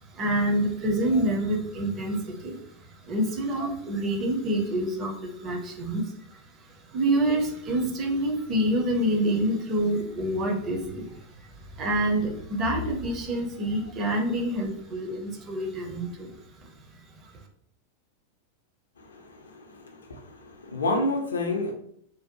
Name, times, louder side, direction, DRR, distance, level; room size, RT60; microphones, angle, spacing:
voice 1, 0.1-6.1 6.6-11.5 11.8-16.3 16.6-16.7, right 1 dB, 30° right, 2 dB, 0.5 m, -27 dB
voice 2, 19.1-19.5 20.0-21.7, left 2 dB, 70° left, 3 dB, 0.4 m, -29 dB
2.6 x 2.0 x 2.7 m, 0.68 s
figure-of-eight pair, 90°, 0 cm